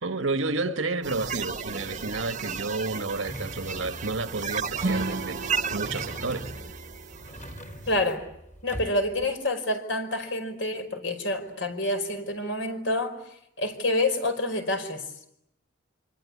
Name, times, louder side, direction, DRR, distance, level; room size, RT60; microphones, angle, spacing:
voice 1, 0.0-5.4 5.7-6.5, right 3 dB, 90° right, 1.5 m, -31 dB
sound 1, 1.0-8.0, right 6 dB, 40° right, 1.2 m, -34 dB
sound 2, 3.3-9.3, equal, 40° left, 4.8 m, -42 dB
Acoustic guitar / Strum, 4.8-8.1, right 2 dB, 60° right, 1.1 m, -34 dB
voice 2, 7.9-8.3 8.6-13.2 13.6-15.0, left 1 dB, 70° left, 5.2 m, -28 dB
27.5 x 25.5 x 8.5 m
head